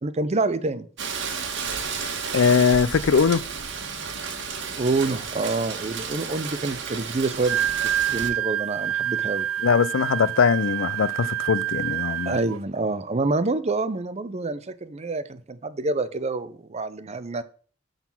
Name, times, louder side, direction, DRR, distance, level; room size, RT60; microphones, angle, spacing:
voice 1, 0.0-0.9 4.7-9.5 12.3-17.4, right 3 dB, 35° right, 0.6 m, -27 dB
Rain, 1.0-8.3, right 5 dB, 60° right, 1.5 m, -32 dB
voice 2, 2.3-3.4 9.6-12.4, left 6 dB, 70° left, 0.4 m, -21 dB
Wind instrument woodwind instrument, 7.3-12.6, right 11 dB, 80° right, 0.3 m, -27 dB
11.0 x 4.0 x 5.9 m
head